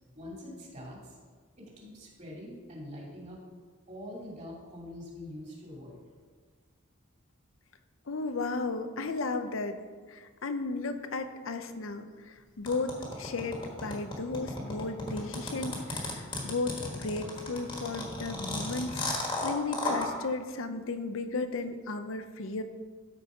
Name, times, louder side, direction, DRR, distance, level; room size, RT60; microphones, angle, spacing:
voice 1, 0.1-1.2 1.6-3.4 3.9-6.0, left 1 dB, 35° right, -3 dB, 2.6 m, -44 dB
voice 2, 8.1-9.8 10.1-19.0 19.4-22.6, left 3 dB, 70° left, 8 dB, 0.6 m, -34 dB
sound 1, 12.7-20.1, left 2 dB, 25° left, 1.5 m, -34 dB
13.0 x 4.7 x 5.1 m, 1.5 s
head